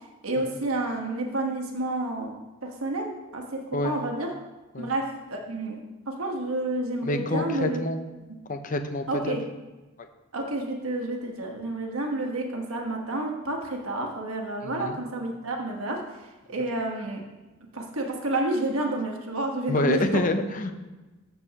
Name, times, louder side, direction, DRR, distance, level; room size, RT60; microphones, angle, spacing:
voice 1, 0.2-4.3 4.8-5.8 6.1-7.8 9.1-9.4 10.3-16.2 16.5-17.2 17.7-20.2, right 2 dB, 80° right, 1 dB, 1.3 m, -30 dB
voice 2, 7.0-8.0 8.5-9.4 14.6-15.0 19.7-20.7, left 2 dB, 40° left, 7 dB, 0.7 m, -27 dB
13.5 x 6.9 x 2.9 m, 1.1 s
head